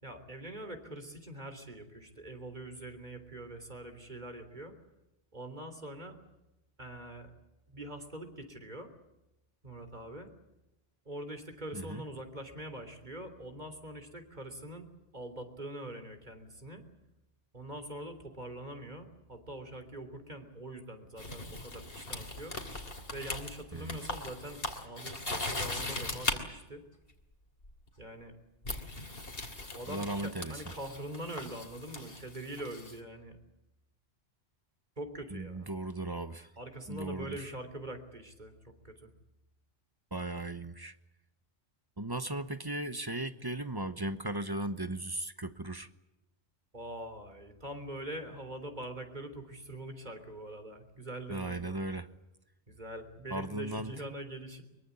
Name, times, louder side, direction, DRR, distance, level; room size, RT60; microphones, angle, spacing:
voice 1, 0.0-4.7 5.3-6.2 6.8-7.3 7.7-8.9 9.6-10.3 11.1-14.9 15.1-16.8 17.5-22.6 23.1-26.8 28.0-28.3 29.7-33.4 35.0-35.7 36.6-39.1 46.7-51.8 52.7-54.6, right 1 dB, 40° right, 3.6 m, -43 dB
sound 1, 21.2-26.4 27.6-27.9 28.6-33.0, left 2 dB, 55° left, 3.3 m, -39 dB
voice 2, 29.9-30.6 35.3-36.5 36.9-37.5 40.1-41.0 42.0-45.9 51.3-52.1 53.3-53.9, right 2 dB, 20° right, 1.0 m, -37 dB
23.5 x 23.5 x 8.4 m
omnidirectional pair, 1.2 m